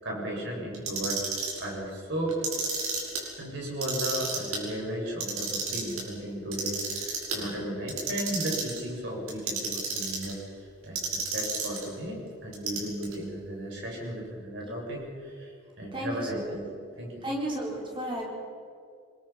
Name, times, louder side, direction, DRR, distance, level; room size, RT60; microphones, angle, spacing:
voice 1, 0.0-2.4 3.4-10.4 10.8-16.6 17.0-17.2, right 1 dB, 55° right, -2 dB, 7.0 m, -35 dB
Clock, 0.7-1.6 2.3-3.2 3.7-4.6 5.1-6.0 6.5-7.4 7.9-8.8 9.3-10.3 11.0-11.9 12.5-13.1, right 4 dB, 85° right, 6.3 m, -31 dB
voice 2, 15.9-16.6 17.2-18.3, right 1 dB, 25° right, -2 dB, 4.4 m, -33 dB
27.0 x 21.0 x 6.0 m, 2.4 s
head